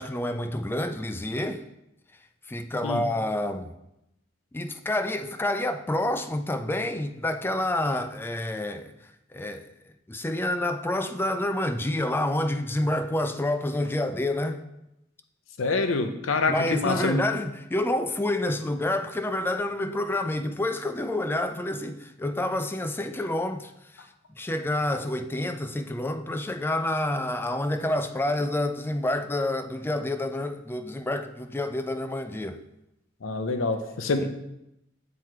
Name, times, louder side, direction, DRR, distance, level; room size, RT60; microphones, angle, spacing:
voice 1, 0.0-1.6 2.5-3.7 4.5-8.9 9.3-9.7 10.1-14.6 16.5-24.1 24.4-32.6, left 1 dB, 10° left, 0.3 m, -28 dB
voice 2, 15.6-17.2 33.2-34.3, left 3 dB, 80° left, 0.6 m, -26 dB
7.6 x 3.1 x 4.5 m
head